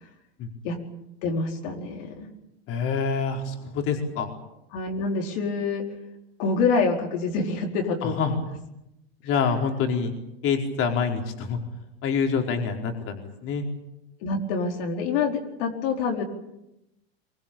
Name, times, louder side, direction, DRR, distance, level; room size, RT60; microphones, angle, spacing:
voice 1, 1.2-2.3 4.7-5.9 6.4-8.4 14.2-16.2, left 4 dB, 60° left, 2 dB, 4.6 m, -26 dB
voice 2, 2.7-4.3 8.0-8.3 9.2-10.1 10.4-11.6 12.0-13.6, left 6 dB, 45° left, 3 dB, 4.6 m, -26 dB
24.0 x 21.0 x 8.8 m, 0.89 s
supercardioid pair, 130°, 31 cm